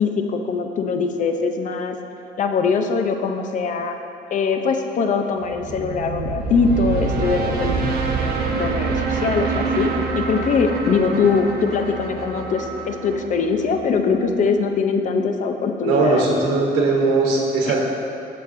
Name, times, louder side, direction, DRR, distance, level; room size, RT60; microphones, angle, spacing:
voice 1, 0.0-2.0 2.4-4.0 4.3-7.8 8.6-16.2 17.7-17.8, left 5 dB, 50° left, 6 dB, 0.6 m, -22 dB
sound 1, 5.4-14.5, right 4 dB, 65° right, 1.0 m, -26 dB
voice 2, 15.8-17.8, right 3 dB, 85° right, -2 dB, 1.1 m, -19 dB
14.0 x 5.8 x 2.6 m, 2.7 s
cardioid pair, 110°, 17 cm